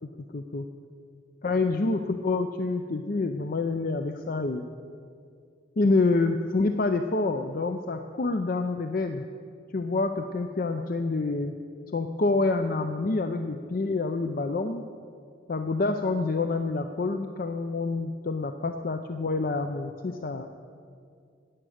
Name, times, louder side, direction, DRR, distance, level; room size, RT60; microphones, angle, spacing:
voice 1, 0.3-0.7 1.4-4.7 5.8-9.3 9.7-11.5 11.9-14.9 15.5-20.5, left 3 dB, 45° left, 7 dB, 0.5 m, -27 dB
11.0 x 8.7 x 9.3 m, 2.3 s
head